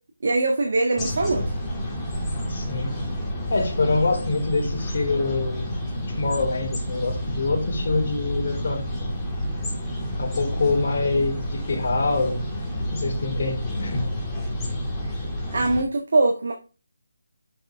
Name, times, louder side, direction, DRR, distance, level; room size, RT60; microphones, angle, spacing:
voice 1, 0.2-1.4 15.5-16.5, right 2 dB, 60° right, 1.5 m, -22 dB
sound 1, 1.0-15.8, equal, 10° left, 1.8 m, -29 dB
voice 2, 2.5-3.0 3.5-9.1 10.2-12.5 12.9-14.0, left 3 dB, 50° left, 3.3 m, -25 dB
7.0 x 6.0 x 3.5 m
figure-of-eight pair, 160°, 0 cm